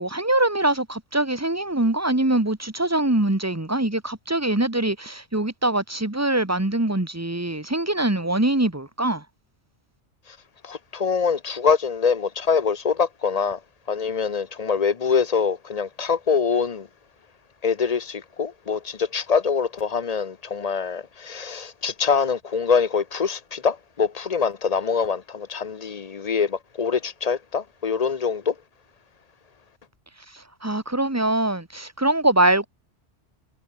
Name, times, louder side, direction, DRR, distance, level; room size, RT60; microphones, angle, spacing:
voice 1, 0.0-9.2 30.3-32.7, right 1 dB, 15° right, 1.7 m, -23 dB
voice 2, 10.6-13.6 13.9-16.9 17.6-28.5, left 5 dB, 40° left, 0.7 m, -24 dB
omnidirectional pair, 1.2 m